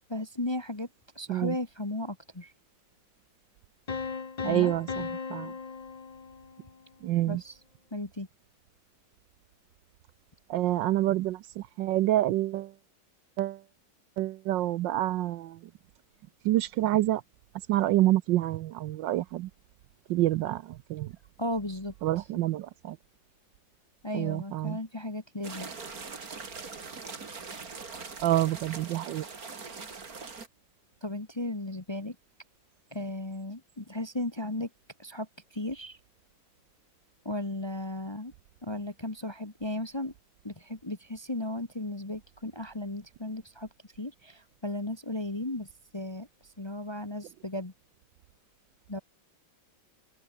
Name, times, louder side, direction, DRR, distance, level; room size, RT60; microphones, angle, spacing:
voice 1, 0.1-0.9 1.1-2.5 4.4-4.7 7.3-7.5 7.9-8.3 21.4-22.2 24.0-25.7 31.0-32.2 32.9-34.7 35.0-36.0 37.2-38.3 38.6-40.1 40.4-43.7 43.9-47.7 48.9-49.0, left 1 dB, 15° left, 1.0 m, -35 dB
sound 1, 3.9-6.8, left 5 dB, 35° left, 0.6 m, -37 dB
voice 2, 4.4-5.5 7.0-7.4 10.5-12.7 13.4-13.6 14.2-15.7 16.4-17.2 17.7-19.5 20.1-21.1 22.0-23.0 24.1-24.8 28.2-29.3, right 15 dB, 75° right, 1.2 m, -27 dB
sound 2, 25.4-30.5, right 4 dB, 45° right, 3.0 m, -42 dB
open air
omnidirectional pair, 2.2 m